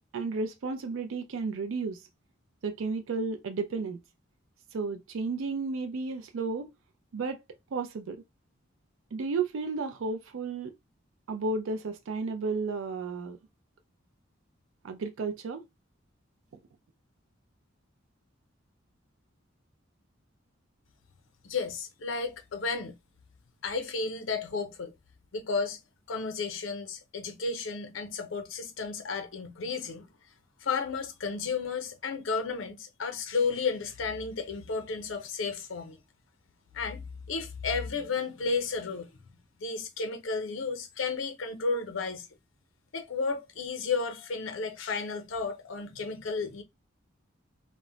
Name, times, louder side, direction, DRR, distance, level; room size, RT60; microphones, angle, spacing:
voice 1, 0.1-2.0 2.6-4.0 4.7-6.7 7.1-7.4 7.7-8.2 9.1-10.7 11.3-13.4 14.8-15.6, right 4 dB, 80° right, 0.4 m, -33 dB
voice 2, 21.4-23.0 23.6-24.9 25.3-25.8 26.1-30.1 30.6-36.0 36.7-39.1 39.6-42.3 42.9-46.6, left 4 dB, 75° left, 0.6 m, -33 dB
2.1 x 2.0 x 3.7 m
head